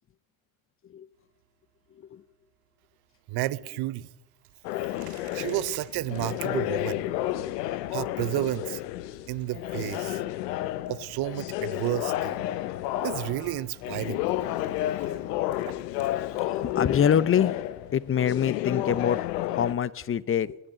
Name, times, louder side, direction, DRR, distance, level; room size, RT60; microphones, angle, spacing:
sound 1, 1.1-19.6, right 10 dB, 90° right, 3.4 m, -60 dB
voice 1, 3.3-4.1 5.3-7.0 7.9-8.8 9.3-10.2 10.9-12.4 13.0-14.2, right 16 dB, 55° right, 0.7 m, -31 dB
sound 2, 4.6-19.7, left 14 dB, 90° left, 0.8 m, -31 dB
voice 2, 16.4-17.6 17.9-20.6, left 9 dB, 30° left, 0.6 m, -25 dB
16.0 x 9.8 x 8.8 m
supercardioid pair, 75°, 46 cm